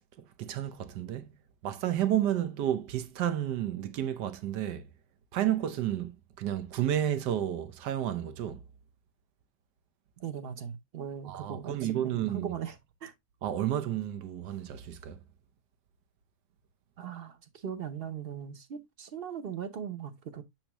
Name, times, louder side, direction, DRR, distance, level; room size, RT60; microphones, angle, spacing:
voice 1, 0.0-4.9 5.3-6.1 6.4-8.6 11.2-12.5 13.4-15.2, right 11 dB, 90° right, 1.4 m, -31 dB
voice 2, 10.2-12.7 13.0-13.1 17.0-20.4, right 8 dB, 50° right, 0.7 m, -39 dB
7.2 x 4.5 x 2.9 m
omnidirectional pair, 1.8 m